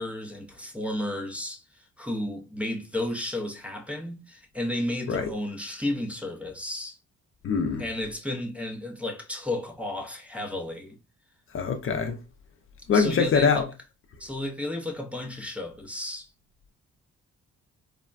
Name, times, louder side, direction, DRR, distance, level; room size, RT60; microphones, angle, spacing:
voice 1, 0.0-7.0 7.8-11.0 12.9-13.7 14.2-16.3, left 1 dB, 5° right, 0.6 m, -33 dB
voice 2, 7.4-7.8 11.5-12.2 12.9-13.6, left 5 dB, 45° left, 0.5 m, -23 dB
3.3 x 2.1 x 2.4 m
cardioid pair, 90°, 30 cm